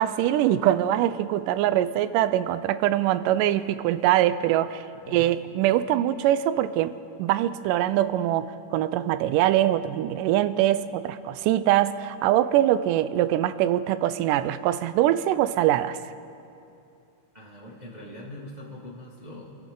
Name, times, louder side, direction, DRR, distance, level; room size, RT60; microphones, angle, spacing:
voice 1, 0.0-16.0, right 12 dB, 85° right, 14 dB, 2.1 m, -23 dB
voice 2, 4.9-5.3 17.3-19.4, left 1 dB, 30° right, -4 dB, 0.7 m, -42 dB
27.0 x 11.0 x 3.8 m, 2.6 s
omnidirectional pair, 3.8 m